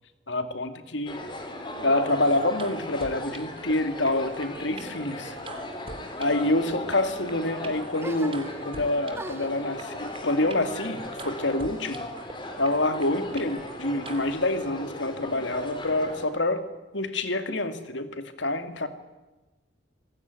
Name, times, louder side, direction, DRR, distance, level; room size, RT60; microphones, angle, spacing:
voice 1, 0.3-1.2 1.8-5.4 6.2-12.1 12.6-16.6 16.9-18.9, left 2 dB, 75° left, 9 dB, 2.5 m, -27 dB
sound 1, 1.1-16.3, left 1 dB, 25° left, 3.8 m, -38 dB
sound 2, 2.0-3.7 4.1-6.6 6.9-9.5 9.8-12.3 12.6-14.4, right 3 dB, 30° right, 2.9 m, -44 dB
sound 3, 8.0-8.8 9.1-11.9 12.2-13.0, right 1 dB, 15° right, 1.8 m, -44 dB
26.5 x 19.0 x 9.6 m, 1.1 s
head